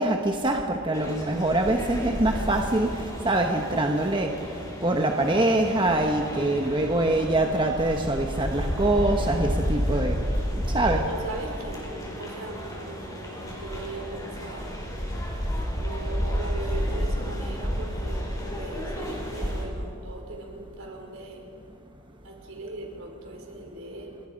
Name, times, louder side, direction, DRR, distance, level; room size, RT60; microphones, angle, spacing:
voice 1, 0.0-4.3 4.8-10.2 10.7-11.0, right 2 dB, 20° right, 2 dB, 1.2 m, -24 dB
sound 1, 0.9-19.6, equal, 15° left, 5.0 m, -31 dB
voice 2, 10.9-14.8 15.7-21.5 22.2-24.2, right 2 dB, 70° right, 1 dB, 4.9 m, -39 dB
29.0 x 23.5 x 5.3 m, 2.3 s
head